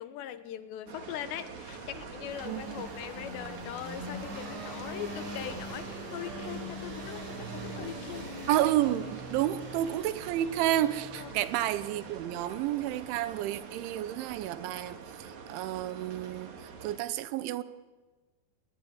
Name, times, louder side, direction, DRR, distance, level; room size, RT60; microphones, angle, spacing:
voice 1, 0.0-8.3 11.1-11.3, left 11 dB, 75° left, 12 dB, 3.1 m, -41 dB
sound 1, 0.9-17.0, right 6 dB, 50° right, 2.7 m, -45 dB
sound 2, 1.5-13.2, equal, 70° right, 8.8 m, -43 dB
sound 3, 2.3-7.4 7.7-7.8, equal, 20° right, 6.5 m, -53 dB
voice 2, 2.5-2.8 8.5-15.0 15.5-16.5 16.8-17.6, right 13 dB, 85° right, 13 dB, 3.4 m, -30 dB
23.0 x 19.5 x 9.9 m, 1.3 s
omnidirectional pair, 5.3 m